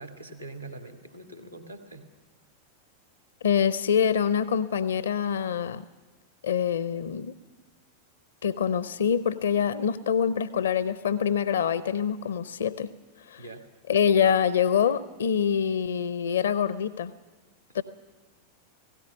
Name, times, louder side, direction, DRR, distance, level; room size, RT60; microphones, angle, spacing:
voice 1, 0.0-2.1 13.4-13.7, right 2 dB, 90° right, 5 dB, 1.9 m, -43 dB
voice 2, 3.4-5.8 6.4-7.3 8.4-12.9 13.3-13.4 13.9-17.1 17.7-17.8, left 8 dB, 65° left, 17 dB, 0.6 m, -25 dB
17.0 x 17.0 x 9.3 m, 1.3 s
figure-of-eight pair, 90°, 0 cm